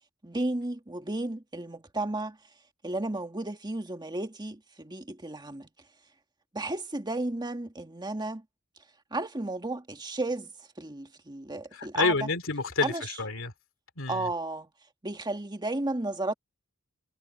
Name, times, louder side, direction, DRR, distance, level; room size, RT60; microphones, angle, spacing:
voice 1, 0.2-2.4 2.8-5.7 6.5-8.4 9.1-12.2 12.8-13.1 14.1-14.7 15.0-16.3, right 2 dB, 20° right, 1.8 m, -33 dB
voice 2, 11.7-13.5 14.0-14.3, left 4 dB, 65° left, 2.7 m, -29 dB
head